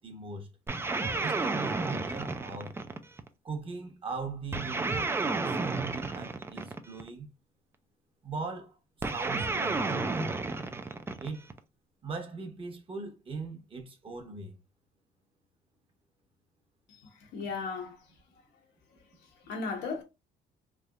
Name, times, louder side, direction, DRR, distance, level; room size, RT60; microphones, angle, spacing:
voice 1, 0.0-0.5 1.2-2.7 3.4-7.3 8.2-8.8 9.1-10.2 11.2-11.5 12.0-14.5, right 3 dB, 30° right, 0.9 m, -40 dB
sound 1, 0.7-3.3 4.5-7.1 9.0-11.6, right 3 dB, 15° right, 0.4 m, -32 dB
voice 2, 16.9-18.4 18.9-20.0, left 4 dB, 80° left, 1.2 m, -38 dB
3.3 x 2.7 x 2.4 m
cardioid pair, 110°, 17 cm